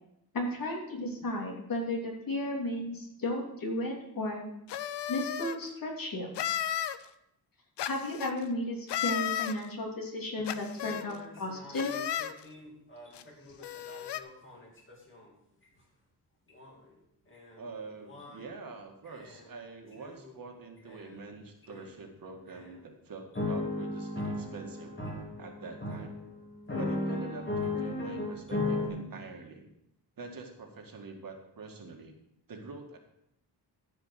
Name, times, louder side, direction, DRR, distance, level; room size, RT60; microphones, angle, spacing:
voice 1, 0.3-4.4 5.1-6.3 7.8-11.9, left 1 dB, 55° left, -1 dB, 3.0 m, -34 dB
sound 1, 4.7-5.6 6.3-7.0 7.8-8.3 8.9-9.5 10.5-11.0 11.7-12.3 13.1-13.2 13.6-14.2, left 11 dB, 85° left, 0.7 m, -33 dB
sound 2, 10.4-10.5 10.8-15.2 16.6-16.7 17.3-17.6 18.1-18.5 19.1-19.5 20.0-20.3 20.9-21.0 21.7-21.8 22.5-22.6 23.3-28.9, left 2 dB, 30° left, 2.7 m, -36 dB
voice 2, 17.6-25.0 25.4-26.2 26.8-29.7 30.2-32.1 32.5-33.0, right 4 dB, 55° right, 3 dB, 1.9 m, -46 dB
14.0 x 5.2 x 6.5 m, 0.80 s
wide cardioid pair, 125°, 41 cm